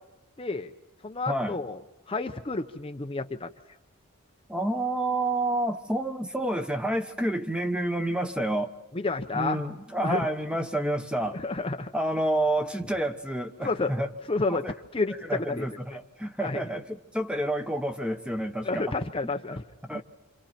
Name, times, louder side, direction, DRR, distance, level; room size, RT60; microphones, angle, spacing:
voice 1, 0.4-0.7 1.0-1.8 2.1-3.5 8.9-9.6 10.0-10.3 11.3-11.9 13.6-13.9 14.3-14.6 14.9-15.7 16.4-16.6 18.6-19.6 19.9-20.0, left 3 dB, 25° left, 6 dB, 0.7 m, -30 dB
voice 2, 1.3-1.6 4.5-8.7 9.3-11.4 11.9-14.1 14.5-14.7 15.3-18.9 19.5-20.0, right 1 dB, 5° right, 7 dB, 1.0 m, -29 dB
28.5 x 26.5 x 4.4 m, 1.1 s
head